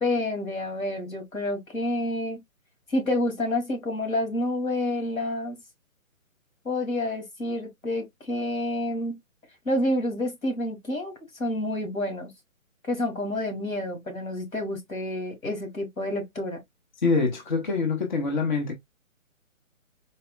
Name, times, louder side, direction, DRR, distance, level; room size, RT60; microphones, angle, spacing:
voice 1, 0.0-2.4 2.9-5.6 6.6-9.1 9.7-11.1 11.4-12.3 12.9-16.6, left 1 dB, 80° left, 2.1 m, -28 dB
voice 2, 17.0-18.8, left 4 dB, 35° left, 0.6 m, -25 dB
4.1 x 2.0 x 2.2 m
figure-of-eight pair, 145°, 41 cm